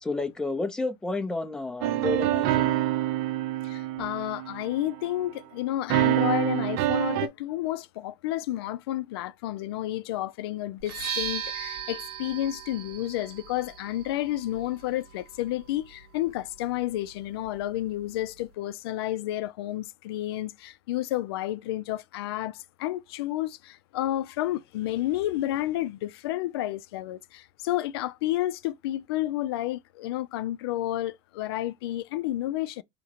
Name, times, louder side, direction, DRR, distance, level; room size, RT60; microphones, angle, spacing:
voice 1, 0.0-2.8, left 2 dB, 5° left, 0.6 m, -31 dB
sound 1, 1.8-5.0 5.9-7.3, right 13 dB, 50° right, 0.5 m, -26 dB
voice 2, 3.6-32.8, left 14 dB, 85° left, 0.5 m, -31 dB
sound 2, 10.8-18.5, right 7 dB, 90° right, 1.5 m, -39 dB
4.9 x 2.9 x 2.9 m
supercardioid pair, 160°, 13 cm